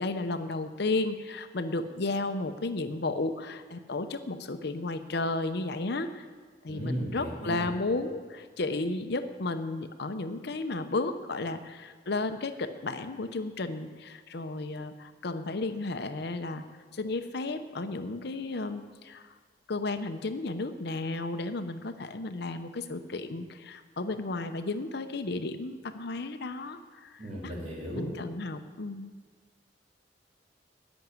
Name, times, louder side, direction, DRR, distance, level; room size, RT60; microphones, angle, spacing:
voice 1, 0.0-6.2 6.6-16.6 16.9-19.3 19.7-27.5 27.9-29.1, left 2 dB, 65° left, 9 dB, 0.8 m, -33 dB
voice 2, 6.7-7.7 27.2-28.1, equal, 45° right, -4 dB, 3.4 m, -35 dB
10.5 x 7.1 x 9.4 m, 1.5 s
head